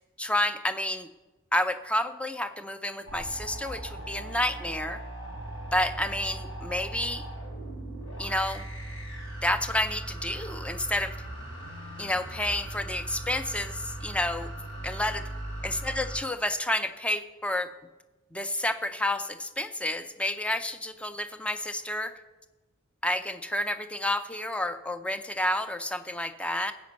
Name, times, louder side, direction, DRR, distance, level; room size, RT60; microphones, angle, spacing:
voice 1, 0.2-1.1 1.5-5.0 5.7-7.2 8.2-8.6 9.4-11.1 12.0-14.5 14.8-15.3 15.6-17.7 18.3-22.2 23.0-26.7, left 1 dB, 5° left, 9 dB, 0.5 m, -30 dB
sound 1, 3.1-16.2, right 1 dB, 80° left, 3.9 m, -39 dB
15.5 x 5.2 x 7.9 m, 1.2 s
head